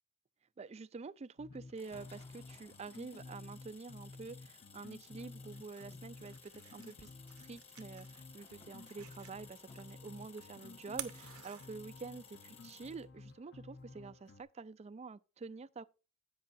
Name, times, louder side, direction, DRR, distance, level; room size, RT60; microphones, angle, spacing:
voice 1, 0.6-7.1 7.4-15.8, right 4 dB, 30° right, 0.3 m, -48 dB
sound 1, 1.4-14.4, left 3 dB, 50° left, 0.8 m, -54 dB
sound 2, 1.7-13.1, left 5 dB, 30° left, 1.3 m, -59 dB
sound 3, 5.3-12.3, right 13 dB, 85° right, 0.9 m, -53 dB
16.5 x 5.5 x 2.5 m
head